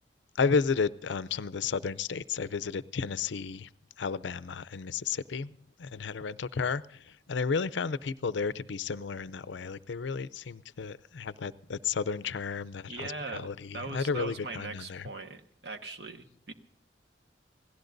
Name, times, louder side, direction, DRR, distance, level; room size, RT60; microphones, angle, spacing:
voice 1, 0.4-3.7 4.0-5.5 5.8-15.1, left 5 dB, 80° left, 17 dB, 0.5 m, -32 dB
voice 2, 12.9-16.5, right 3 dB, 65° right, 5 dB, 1.4 m, -40 dB
29.5 x 17.0 x 2.6 m, 0.64 s
head